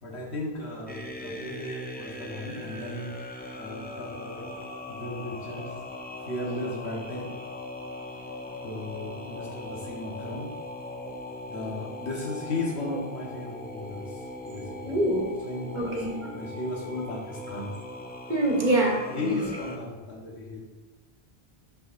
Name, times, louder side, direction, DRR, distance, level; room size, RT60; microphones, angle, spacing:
voice 1, 0.0-3.1 3.5-4.5 4.9-5.7 6.2-7.3 8.6-10.5 11.5-15.0 15.4-17.7 19.1-20.6, left 2 dB, 90° left, -3 dB, 1.7 m, -35 dB
sound 1, 0.9-19.8, left 2 dB, 15° left, 0.4 m, -40 dB
voice 2, 14.8-15.3 15.7-16.1 17.0-17.1 18.3-19.5, right 1 dB, 45° right, -1 dB, 1.3 m, -25 dB
7.2 x 6.6 x 2.6 m, 1.2 s
omnidirectional pair, 1.1 m